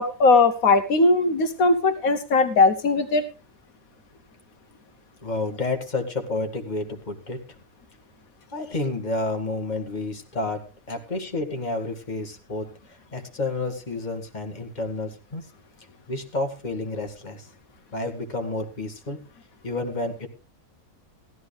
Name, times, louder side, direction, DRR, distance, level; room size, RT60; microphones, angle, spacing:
voice 1, 0.0-3.2, left 3 dB, 80° left, 10 dB, 1.4 m, -19 dB
voice 2, 5.2-7.4 8.5-12.7 13.1-15.4 16.1-17.5 17.9-19.2 19.6-20.3, left 2 dB, 30° left, 5 dB, 2.1 m, -30 dB
16.0 x 12.5 x 3.3 m, 0.31 s
omnidirectional pair, 1.5 m